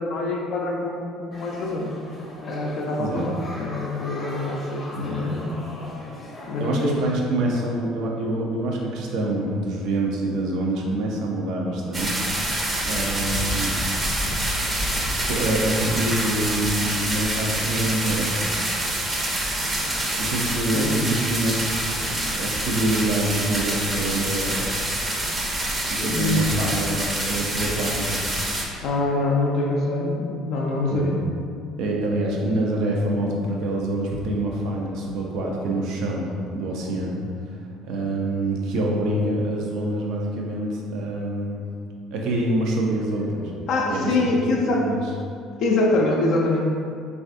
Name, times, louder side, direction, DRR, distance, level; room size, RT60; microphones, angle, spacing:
voice 1, 0.0-2.0 2.4-5.6 6.5-7.0 20.7-21.0 26.0-26.5 28.8-31.2 43.7-44.8 45.6-46.6, left 2 dB, 65° left, -2 dB, 0.4 m, -24 dB
sound 1, 1.3-6.9, left 1 dB, 25° left, 0.6 m, -40 dB
voice 2, 6.6-13.7 15.2-18.3 20.2-24.6 26.0-28.2 30.9-31.1 31.8-37.5 37.8-41.6 42.1-43.5 43.9-44.2 44.5-45.0, right 1 dB, 70° right, -1 dB, 0.5 m, -26 dB
sound 2, 11.9-28.6, right 1 dB, 25° right, 0.6 m, -26 dB
3.2 x 2.4 x 2.5 m, 2.3 s
hypercardioid pair, 70°, 0 cm